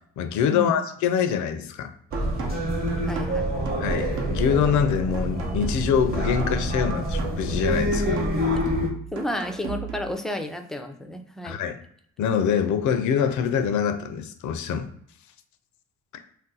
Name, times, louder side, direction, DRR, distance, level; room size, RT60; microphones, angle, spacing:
voice 1, 0.2-1.9 3.8-8.2 11.4-11.8 12.2-14.9, left 7 dB, 75° left, 8 dB, 0.5 m, -24 dB
sound 1, 2.1-8.9, equal, 30° right, 0.9 m, -26 dB
sound 2, 2.1-10.1, right 6 dB, 80° right, 0.8 m, -37 dB
voice 2, 3.0-3.5 8.5-11.6, left 1 dB, ahead, 6 dB, 0.3 m, -32 dB
2.5 x 2.1 x 3.9 m, 0.64 s
cardioid pair, 90°, 30 cm